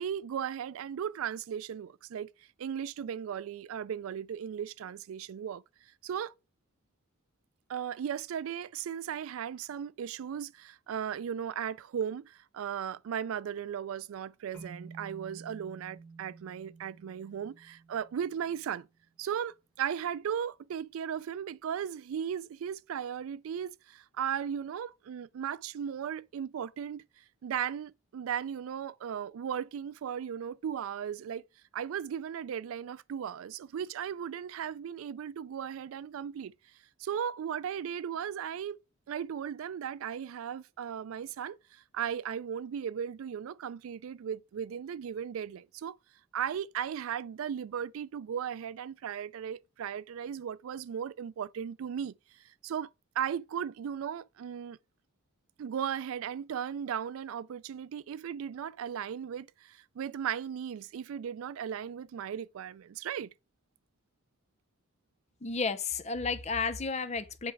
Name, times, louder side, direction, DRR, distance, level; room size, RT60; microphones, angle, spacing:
voice 1, 0.0-2.3 2.6-5.6 6.0-6.3 7.7-18.9 19.2-27.1 27.4-31.4 31.7-36.5 37.0-38.8 39.1-46.0 46.3-52.9 53.2-54.8 55.6-63.3, right 8 dB, 85° right, 0.3 m, -36 dB
sound 1, 14.5-18.8, right 4 dB, 5° left, 1.9 m, -51 dB
voice 2, 65.4-67.5, left 4 dB, 30° left, 0.6 m, -32 dB
7.9 x 3.2 x 4.7 m
head